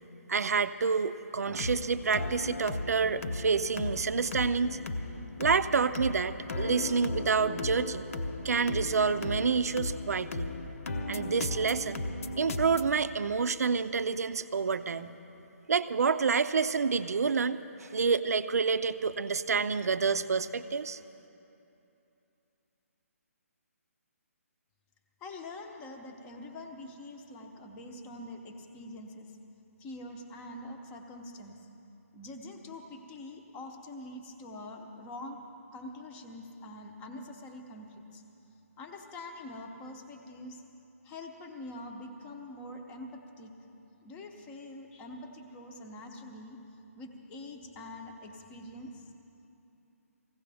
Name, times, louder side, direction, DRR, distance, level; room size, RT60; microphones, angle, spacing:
voice 1, 0.3-4.8 5.4-8.1 8.4-10.5 11.1-12.0 12.4-15.1 15.7-21.0, right 5 dB, 80° right, 12 dB, 0.5 m, -28 dB
sound 1, 1.5-12.9, left 2 dB, 65° left, 0.9 m, -36 dB
voice 2, 25.2-29.4 29.8-31.6 32.1-35.4 35.7-38.2 38.8-40.6 41.0-43.5 44.0-46.6 47.0-49.1, left 1 dB, 15° left, 4 dB, 0.8 m, -45 dB
19.5 x 16.0 x 3.4 m, 2.9 s
hypercardioid pair, 160°, 8 cm